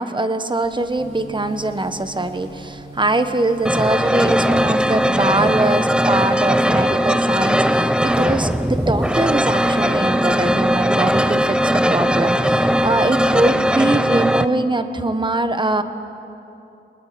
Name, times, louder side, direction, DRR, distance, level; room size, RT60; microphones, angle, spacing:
voice 1, 0.0-15.8, right 2 dB, 25° right, 9 dB, 1.4 m, -22 dB
sound 1, 0.6-13.5, right 1 dB, 80° right, 5.1 m, -46 dB
Gong, 1.0-9.0, right 3 dB, 45° right, 6.9 m, -43 dB
sound 2, 3.6-14.4, equal, 5° right, 0.7 m, -18 dB
23.5 x 21.0 x 9.4 m, 2.9 s
wide cardioid pair, 95°, 20 cm